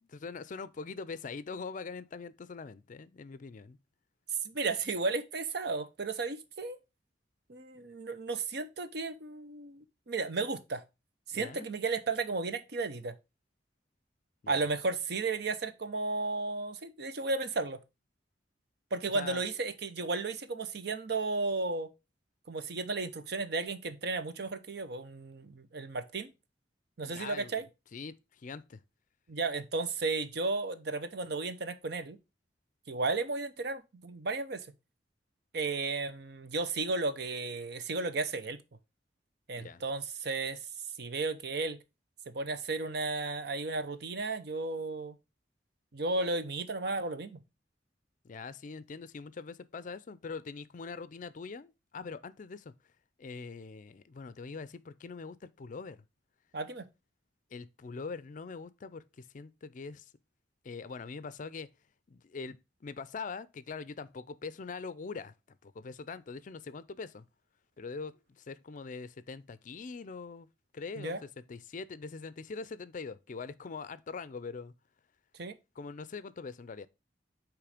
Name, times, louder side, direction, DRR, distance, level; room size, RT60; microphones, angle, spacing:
voice 1, 0.0-3.8 11.3-11.7 14.4-14.7 19.1-19.4 27.1-28.8 39.5-39.8 48.2-52.7 53.2-56.0 57.5-60.1 60.6-61.7 62.1-62.6 62.8-65.3 65.6-67.2 67.8-70.5 70.7-74.7 75.8-76.9, left 4 dB, 45° left, 0.4 m, -43 dB
voice 2, 4.4-6.8 7.5-10.8 11.3-13.1 14.5-17.8 18.9-21.9 22.5-26.3 27.0-27.7 29.3-32.2 32.9-34.6 35.5-38.6 39.5-40.6 41.0-41.8 42.3-45.1 45.9-47.4 56.5-56.9 71.0-71.2 75.4-75.5, right 3 dB, 60° right, 0.7 m, -34 dB
8.4 x 3.2 x 4.8 m
head